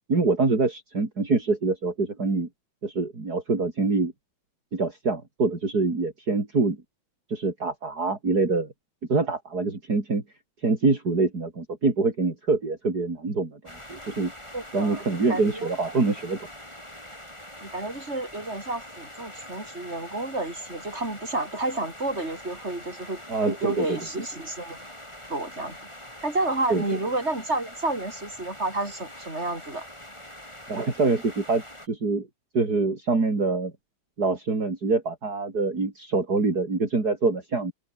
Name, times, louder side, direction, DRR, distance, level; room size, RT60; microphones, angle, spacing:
voice 1, 0.1-2.5 2.8-4.1 4.7-6.8 7.3-8.7 9.1-10.2 10.6-13.6 13.9-14.3 14.7-16.5 23.3-24.0 26.7-26.8 30.7-32.3 32.5-33.7 34.2-37.7, right 3 dB, 50° right, 4.6 m, -25 dB
sound 1, 13.7-31.9, left 1 dB, 15° left, 7.9 m, -44 dB
voice 2, 14.5-15.7 17.6-23.2 23.5-24.8 25.3-25.8 26.2-29.8, right 2 dB, 30° right, 6.4 m, -30 dB
open air
omnidirectional pair, 2.2 m